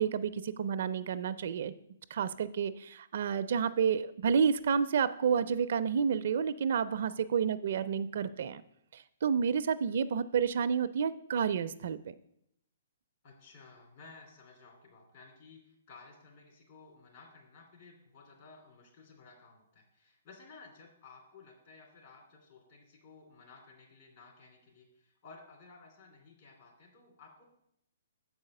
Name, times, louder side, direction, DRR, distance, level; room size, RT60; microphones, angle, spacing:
voice 1, 0.0-1.7 2.1-8.6 8.9-12.1, right 7 dB, 60° right, 14 dB, 0.4 m, -30 dB
voice 2, 13.2-27.4, left 4 dB, 45° left, 0 dB, 3.0 m, -56 dB
7.0 x 4.8 x 6.5 m, 0.75 s
hypercardioid pair, 145°, 0 cm